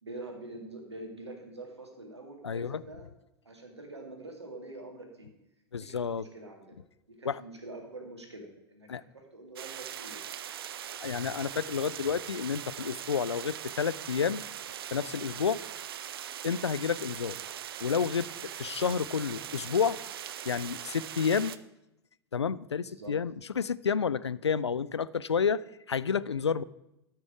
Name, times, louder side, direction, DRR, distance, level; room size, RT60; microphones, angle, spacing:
voice 1, 0.0-3.1 3.4-5.3 5.8-6.8 7.2-10.2 22.8-23.2, right 2 dB, 80° right, 2.1 m, -45 dB
voice 2, 2.4-2.8 5.7-6.3 7.2-7.4 8.9-9.0 11.0-14.4 14.9-15.6 16.4-17.4 17.8-18.3 18.6-20.0 20.5-21.5 22.3-26.6, left 6 dB, 80° left, 0.4 m, -30 dB
sound 1, 9.6-21.6, right 10 dB, 60° right, 0.5 m, -41 dB
13.0 x 6.1 x 4.7 m
figure-of-eight pair, 90°, 14 cm